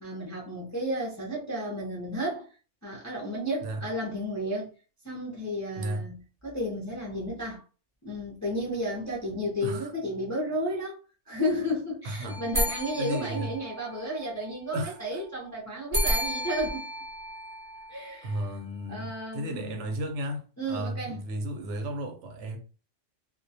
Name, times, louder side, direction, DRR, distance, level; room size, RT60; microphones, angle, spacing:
voice 1, 0.0-2.5 2.8-4.7 5.0-6.2 6.4-7.6 8.0-11.0 11.3-16.9 17.9-18.5 18.9-19.9 20.6-21.2, equal, 25° left, 0.4 m, -32 dB
voice 2, 5.8-6.1 9.6-9.9 12.0-12.4 13.0-13.6 14.7-15.2 18.2-20.4 20.7-22.6, right 1 dB, 75° right, 0.9 m, -34 dB
sound 1, 12.3-14.2 15.9-18.3, equal, 10° right, 0.7 m, -32 dB
2.2 x 2.1 x 2.7 m
omnidirectional pair, 1.3 m